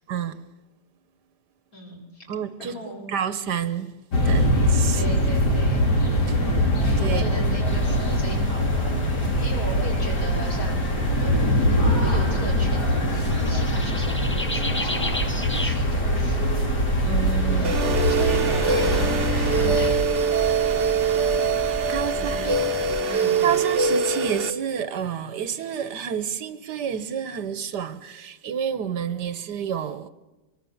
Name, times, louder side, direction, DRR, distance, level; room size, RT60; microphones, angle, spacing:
voice 1, 1.7-2.2 2.6-3.1 4.9-5.9 7.1-9.1 9.4-11.3 11.7-16.6 17.4-20.1 20.7-21.0 22.0-23.5, equal, 55° left, 5.6 m, -38 dB
voice 2, 2.3-2.7 3.1-4.0 4.2-5.0 6.3-6.7 7.0-7.3 17.1-17.8 21.9-22.7 23.4-30.1, right 8 dB, 75° right, 1.5 m, -29 dB
sound 1, 4.1-19.9, equal, 70° left, 3.9 m, -23 dB
sound 2, 7.6-23.0, equal, 15° left, 0.5 m, -34 dB
sound 3, 17.6-24.5, right 5 dB, 45° right, 1.2 m, -23 dB
23.5 x 23.0 x 7.1 m
omnidirectional pair, 1.8 m